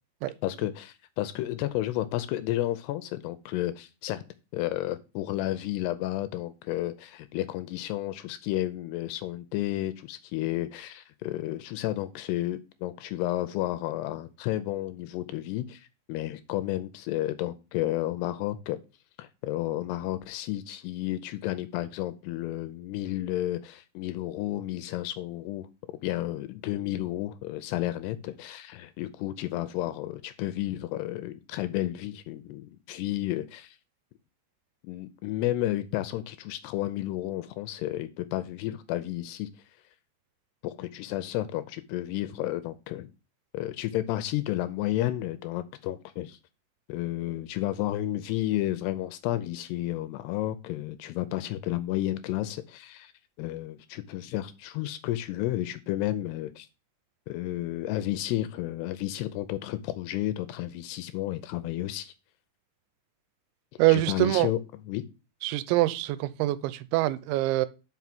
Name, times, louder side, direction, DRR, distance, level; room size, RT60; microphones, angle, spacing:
voice 1, 0.4-4.2 4.5-18.8 19.2-25.7 26.0-33.8 34.8-39.5 40.6-43.1 43.5-46.4 46.9-53.1 53.4-56.7 57.3-62.1 63.9-64.6 64.9-65.0, left 15 dB, 85° left, 2.4 m, -32 dB
voice 2, 63.8-64.5 65.4-67.7, right 18 dB, 85° right, 3.0 m, -24 dB
6.1 x 5.5 x 5.9 m
omnidirectional pair, 5.3 m